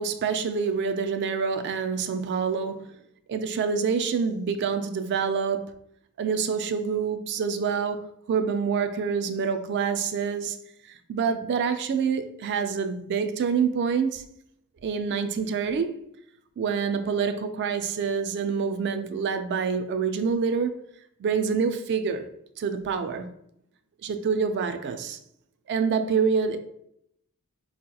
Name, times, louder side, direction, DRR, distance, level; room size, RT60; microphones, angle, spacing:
voice 1, 0.0-2.9 3.3-5.7 6.2-10.6 10.9-14.2 14.8-16.0 16.6-20.7 21.2-22.3 22.6-23.3 24.0-25.2 25.7-26.6, right 6 dB, 50° right, 0.3 m, -26 dB
4.4 x 2.8 x 2.3 m
head